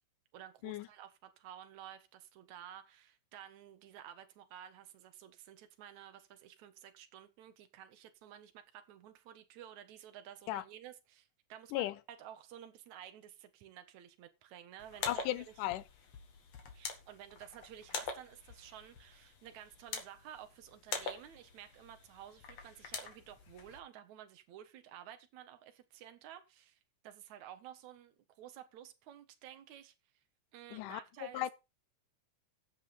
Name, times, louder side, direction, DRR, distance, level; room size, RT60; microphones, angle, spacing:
voice 1, 0.3-15.7 16.7-29.9 30.5-31.5, right 10 dB, 65° right, 2.6 m, -53 dB
sound 1, 14.8-23.8, left 4 dB, 55° left, 3.0 m, -45 dB
voice 2, 15.1-15.8 30.7-31.0 31.3-31.5, left 15 dB, 80° left, 2.3 m, -36 dB
15.0 x 7.4 x 4.2 m
omnidirectional pair, 3.7 m